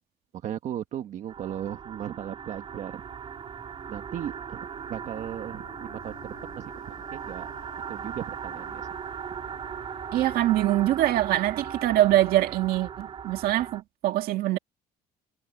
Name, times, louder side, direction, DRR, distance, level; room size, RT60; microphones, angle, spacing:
voice 1, 0.3-3.0 3.9-7.5 7.9-8.9, right 10 dB, 50° right, 1.4 m, -37 dB
sound 1, 1.3-13.8, right 7 dB, 35° right, 3.4 m, -38 dB
sound 2, 2.6-11.9, left 14 dB, 65° left, 4.7 m, -54 dB
voice 2, 10.1-14.6, right 14 dB, 70° right, 1.9 m, -24 dB
cardioid pair, 160°, 16 cm